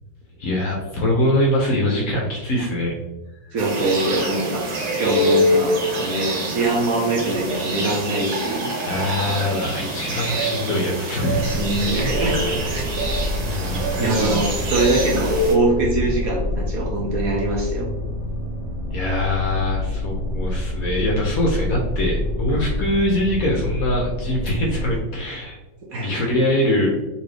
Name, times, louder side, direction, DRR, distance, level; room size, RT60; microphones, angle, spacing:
voice 1, 0.4-2.9 8.8-11.6 13.5-14.4 18.9-25.6 26.0-26.9, left 1 dB, 65° left, -1 dB, 0.9 m, -23 dB
voice 2, 3.5-4.6 4.9-8.7 11.5-12.8 14.0-17.9 25.9-26.3, right 2 dB, 60° right, -2 dB, 1.0 m, -23 dB
sound 1, 3.6-15.6, right 1 dB, 85° right, 1.7 m, -25 dB
sound 2, 11.3-25.0, left 1 dB, 35° right, 0.6 m, -27 dB
4.0 x 2.7 x 3.2 m, 1.0 s
omnidirectional pair, 2.1 m